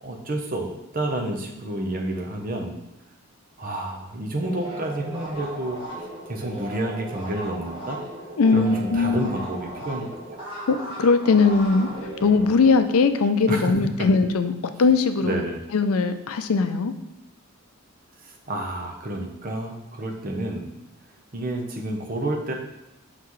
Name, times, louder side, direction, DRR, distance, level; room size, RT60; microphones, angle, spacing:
voice 1, 0.0-2.8 3.6-5.8 6.3-8.0 8.5-10.4 13.5-13.7 14.0-14.1 15.2-15.6 18.2-20.7 21.3-22.5, right 1 dB, 40° right, 2 dB, 0.8 m, -29 dB
sound 1, 4.4-13.6, right 1 dB, 25° right, 1.6 m, -37 dB
voice 2, 8.4-9.3 10.7-14.5 14.8-15.4 15.7-16.9, left 4 dB, 75° left, 9 dB, 0.5 m, -20 dB
5.8 x 5.7 x 3.1 m, 0.88 s
head